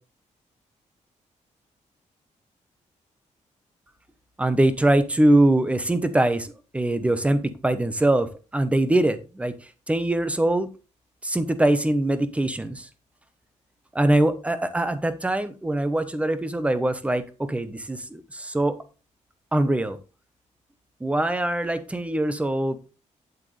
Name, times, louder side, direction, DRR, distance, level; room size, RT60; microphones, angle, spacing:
voice 1, 4.4-9.5 9.9-10.7 11.2-12.9 13.9-18.7 19.5-20.0 21.0-22.8, right 1 dB, 10° right, 11 dB, 1.1 m, -23 dB
9.4 x 8.1 x 3.3 m, 0.31 s
wide cardioid pair, 140°, 13 cm